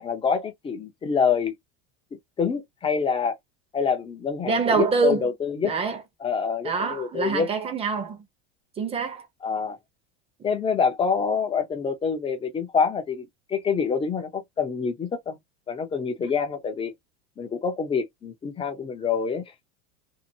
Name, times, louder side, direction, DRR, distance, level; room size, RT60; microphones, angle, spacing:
voice 1, 0.0-1.5 2.4-3.4 3.7-5.8 6.2-7.5 9.4-9.8 10.4-15.4 15.7-16.9 17.4-19.4, left 6 dB, 15° left, 0.7 m, -26 dB
voice 2, 4.4-5.2 5.6-6.0 6.6-8.2 8.8-9.3, right 5 dB, 20° right, 0.9 m, -25 dB
2.7 x 2.5 x 2.8 m
supercardioid pair, 140°, 32 cm